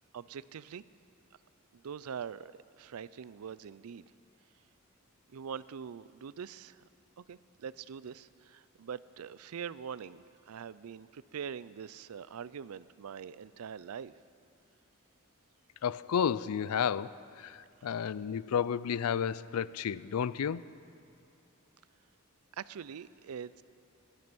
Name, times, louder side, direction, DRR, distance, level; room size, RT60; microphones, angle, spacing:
voice 1, 0.1-0.8 1.7-4.0 5.3-6.8 7.2-14.1 22.6-23.6, right 7 dB, 80° right, 18 dB, 0.4 m, -43 dB
voice 2, 15.8-20.6, left 7 dB, 85° left, 18 dB, 0.4 m, -32 dB
17.5 x 12.5 x 6.0 m, 2.6 s
head